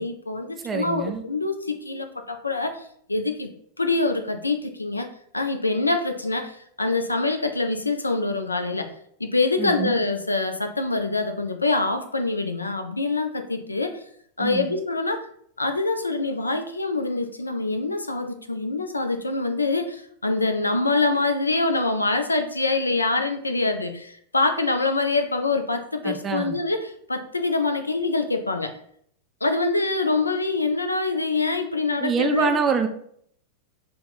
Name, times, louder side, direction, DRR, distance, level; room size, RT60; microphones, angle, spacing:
voice 1, 0.0-3.5 3.8-8.9 9.2-14.0 14.4-15.3 15.6-28.7 29.4-32.5, left 3 dB, 80° left, 6 dB, 0.3 m, -25 dB
voice 2, 0.6-1.2 9.6-9.9 14.4-14.7 26.0-26.6 32.0-32.9, right 5 dB, 25° right, 7 dB, 0.4 m, -25 dB
2.9 x 2.1 x 3.8 m, 0.65 s
figure-of-eight pair, 90°, 0 cm